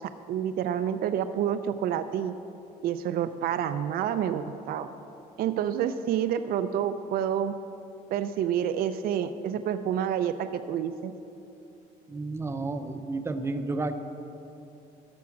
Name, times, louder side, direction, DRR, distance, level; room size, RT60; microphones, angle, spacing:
voice 1, 0.3-2.3 2.8-4.9 5.4-7.5 8.1-11.1, right 9 dB, 60° right, 10 dB, 0.4 m, -28 dB
voice 2, 12.1-13.9, right 3 dB, 15° right, 8 dB, 0.6 m, -31 dB
13.0 x 6.1 x 5.9 m, 2.8 s
cardioid pair, 110°, 17 cm